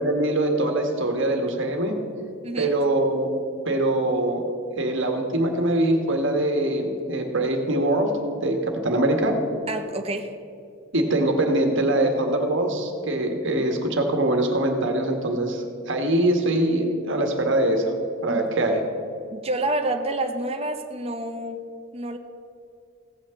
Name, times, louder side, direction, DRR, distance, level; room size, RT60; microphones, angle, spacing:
voice 1, 0.0-2.0 2.6-3.3 3.6-4.4 4.7-8.1 8.4-9.4 10.9-17.9 18.2-18.8, right 1 dB, 60° right, 4 dB, 1.7 m, -23 dB
voice 2, 9.7-10.3 18.3-18.4 19.3-21.6 21.9-22.2, right 1 dB, 30° right, 5 dB, 0.9 m, -28 dB
16.5 x 6.4 x 7.7 m, 2.4 s
head